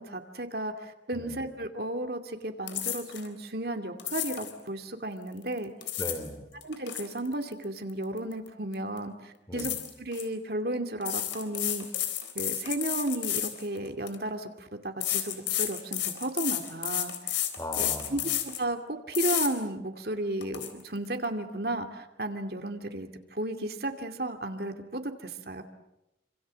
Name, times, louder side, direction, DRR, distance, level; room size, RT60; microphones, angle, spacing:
voice 1, 0.0-5.7 6.6-11.9 12.3-17.3 17.8-25.6, right 1 dB, 55° right, 6 dB, 2.5 m, -34 dB
sound 1, 2.7-3.3 4.0-4.5 5.6-6.3 6.6-8.5 8.7-9.0 9.6-10.2 11.0-14.2 15.0-18.6 19.1-19.5 20.0-20.1 20.4-20.7, left 12 dB, 85° left, 3.9 m, -31 dB
voice 2, 6.0-6.4 9.5-9.7 17.6-18.1, equal, 20° left, 8 dB, 3.3 m, -37 dB
28.0 x 26.5 x 7.6 m, 0.89 s
head